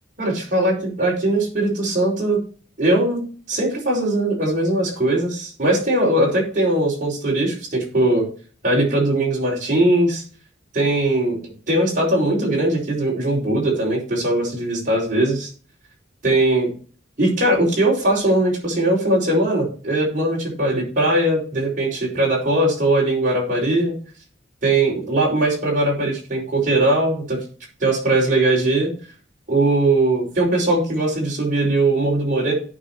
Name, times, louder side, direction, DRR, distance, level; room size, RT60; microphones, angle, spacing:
voice 1, 0.2-2.4 2.8-8.3 8.6-10.2 10.7-11.4 11.7-15.5 16.2-16.7 17.2-24.0 24.6-27.4 27.8-28.9 29.5-32.5, right 1 dB, 45° right, -3 dB, 5.4 m, -20 dB
17.0 x 5.6 x 3.1 m, 0.41 s
head